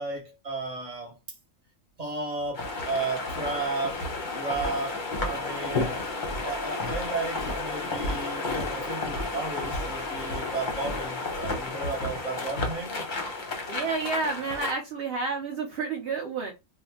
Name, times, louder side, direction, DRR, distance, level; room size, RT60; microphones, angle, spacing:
voice 1, 0.0-1.4 2.0-4.1 4.3-5.0 5.2-6.0 6.4-13.0, right 3 dB, 30° right, 1.1 m, -34 dB
sound 1, 2.5-14.8, left 2 dB, 40° left, 0.8 m, -32 dB
voice 2, 13.7-16.5, right 4 dB, 55° right, 0.7 m, -30 dB
2.7 x 2.4 x 3.4 m
omnidirectional pair, 1.4 m